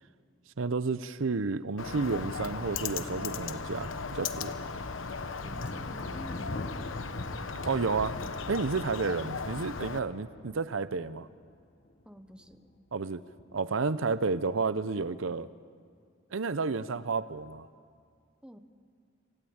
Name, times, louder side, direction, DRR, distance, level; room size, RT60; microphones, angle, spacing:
voice 1, 0.6-4.6 7.6-8.1 8.5-11.3 12.9-13.2 13.5-15.5 16.3-17.7, right 4 dB, 80° right, 15 dB, 0.7 m, -31 dB
Bird, 1.8-10.0, left 4 dB, 80° left, 1.1 m, -37 dB
voice 2, 5.4-6.6 12.0-12.7 18.4-18.6, equal, 5° right, 8 dB, 1.1 m, -49 dB
Thunder, 5.6-12.0 12.3-12.9 13.4-14.2, left 2 dB, 50° left, 1.1 m, -43 dB
27.0 x 16.5 x 8.7 m, 2.2 s
head